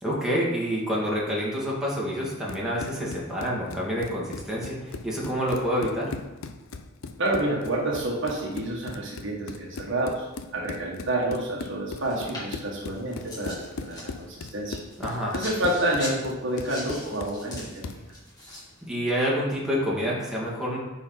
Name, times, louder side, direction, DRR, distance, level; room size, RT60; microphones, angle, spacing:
voice 1, 0.0-6.1 15.0-15.4 18.9-20.8, equal, 5° right, -6 dB, 2.1 m, -28 dB
Run, 2.3-18.1, left 3 dB, 80° left, 0.6 m, -39 dB
voice 2, 7.2-14.8 15.3-17.8, right 1 dB, 65° right, -2 dB, 1.6 m, -29 dB
sound 1, 12.0-18.9, left 1 dB, 20° left, 2.3 m, -42 dB
9.5 x 4.5 x 4.0 m, 1.0 s
head